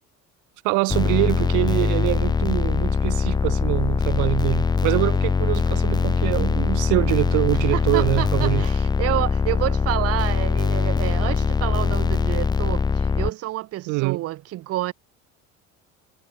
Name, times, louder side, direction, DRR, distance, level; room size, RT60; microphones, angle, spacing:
voice 1, 0.6-8.7 13.9-14.2, right 27 dB, 70° right, 0.6 m, -24 dB
sound 1, 0.9-13.3, left 5 dB, 15° left, 0.5 m, -22 dB
voice 2, 7.5-14.9, right 15 dB, 45° right, 0.9 m, -29 dB
cardioid pair, 150°, 32 cm